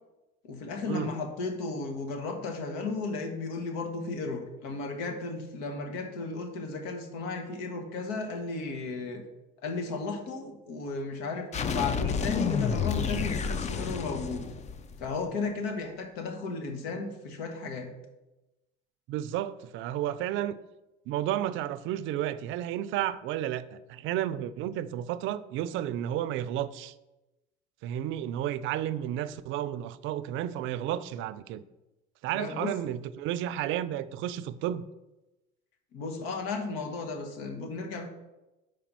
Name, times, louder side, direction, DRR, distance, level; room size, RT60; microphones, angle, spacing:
voice 1, 0.4-9.2 9.6-14.4 15.0-17.9 32.3-32.7 35.9-38.1, left 3 dB, 90° left, 1.3 m, -34 dB
sound 1, 11.5-15.2, left 6 dB, 30° left, 0.5 m, -30 dB
voice 2, 19.1-20.6 21.1-26.9 27.8-31.6 32.2-34.9, right 11 dB, 65° right, 0.4 m, -32 dB
5.1 x 4.8 x 6.0 m
supercardioid pair, 100°, 21 cm